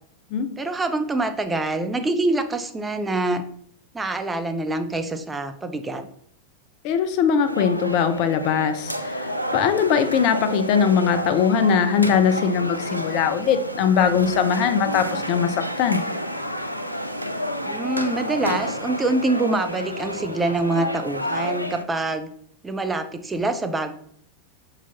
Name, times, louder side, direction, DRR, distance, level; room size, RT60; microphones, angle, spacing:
voice 1, 0.6-3.4 3.9-6.0 17.6-22.3 22.6-23.9, right 2 dB, 10° right, 8 dB, 0.6 m, -25 dB
voice 2, 6.8-16.0, left 7 dB, 40° left, 9 dB, 0.6 m, -21 dB
sound 1, 7.4-21.8, equal, 90° left, 0.5 m, -30 dB
6.0 x 4.0 x 4.0 m, 0.62 s
figure-of-eight pair, 90°, 0 cm